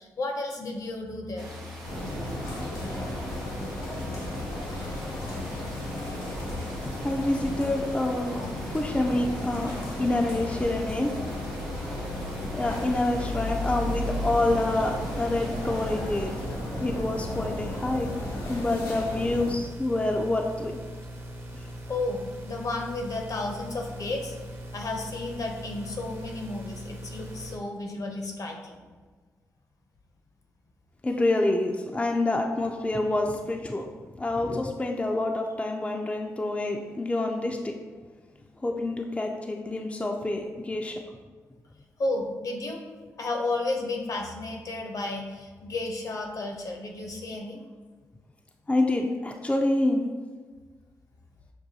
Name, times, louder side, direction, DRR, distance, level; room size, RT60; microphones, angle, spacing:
voice 1, 0.0-1.5 21.9-24.4 24.7-28.8 42.0-42.8 43.2-47.6, left 2 dB, 55° left, 2 dB, 0.7 m, -32 dB
sound 1, 1.4-17.1, right 1 dB, 90° right, 0.7 m, -45 dB
sound 2, 1.8-19.5, left 1 dB, 85° left, 0.8 m, -34 dB
voice 2, 7.0-9.7 10.0-11.1 12.5-16.3 16.7-18.1 18.5-20.8 31.0-33.9 34.2-37.7 38.6-41.0 48.7-50.0, left 2 dB, 15° left, 2 dB, 0.4 m, -27 dB
sound 3, 12.6-27.6, equal, 30° right, 0.8 m, -41 dB
6.0 x 2.2 x 2.7 m, 1.4 s
supercardioid pair, 45°, 7 cm